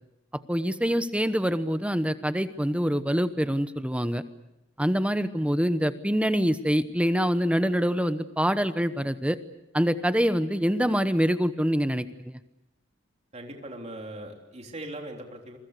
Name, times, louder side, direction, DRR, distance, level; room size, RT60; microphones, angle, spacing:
voice 1, 0.5-4.2 4.8-9.4 9.7-12.3, equal, 5° right, 11 dB, 1.0 m, -25 dB
voice 2, 13.3-15.6, right 1 dB, 35° right, 2 dB, 3.5 m, -40 dB
28.0 x 24.0 x 6.7 m, 0.89 s
head